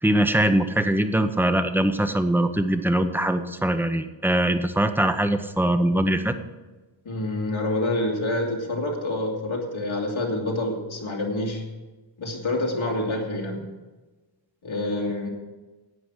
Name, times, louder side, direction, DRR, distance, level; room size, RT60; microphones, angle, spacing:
voice 1, 0.0-6.3, right 1 dB, 5° right, 9 dB, 0.8 m, -22 dB
voice 2, 7.0-11.6 12.2-13.7 14.6-15.3, left 1 dB, 85° left, -1 dB, 2.6 m, -27 dB
11.5 x 8.8 x 6.3 m, 1.2 s
wide cardioid pair, 90°, 47 cm